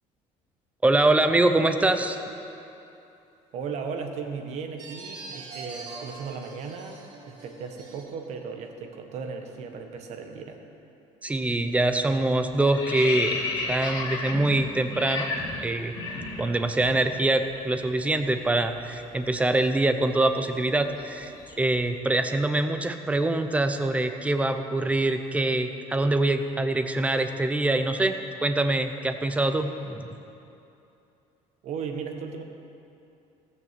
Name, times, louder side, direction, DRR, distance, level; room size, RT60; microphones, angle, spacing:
voice 1, 0.8-2.2 11.2-13.4 13.7-15.3 15.6-15.9 16.4-30.1, right 2 dB, 10° right, 8 dB, 0.7 m, -24 dB
voice 2, 3.5-10.6 31.6-32.4, right 5 dB, 55° right, 5 dB, 1.4 m, -36 dB
sound 1, 4.8-8.0, right 3 dB, 35° right, 3.6 m, -42 dB
sound 2, 11.4-11.7 12.0-17.0 17.2-17.4 17.7-21.8, left 3 dB, 35° left, 3.0 m, -34 dB
17.0 x 6.7 x 7.5 m, 2.8 s
cardioid pair, 145°, 13 cm